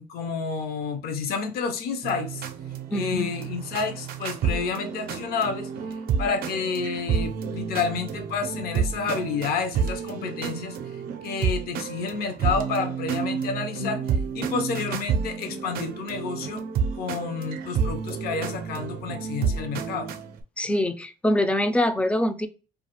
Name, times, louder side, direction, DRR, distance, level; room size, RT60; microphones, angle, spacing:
voice 1, 0.0-2.5 2.9-5.7 6.2-10.8 11.2-14.0 14.3-16.6 17.0-20.1, left 5 dB, 65° left, 0.6 m, -30 dB
sound 1, 2.0-20.4, right 6 dB, 60° right, 0.4 m, -30 dB
voice 2, 2.9-3.3 20.6-22.5, left 1 dB, 5° left, 0.3 m, -24 dB
2.4 x 2.4 x 2.8 m
cardioid pair, 110°, 17 cm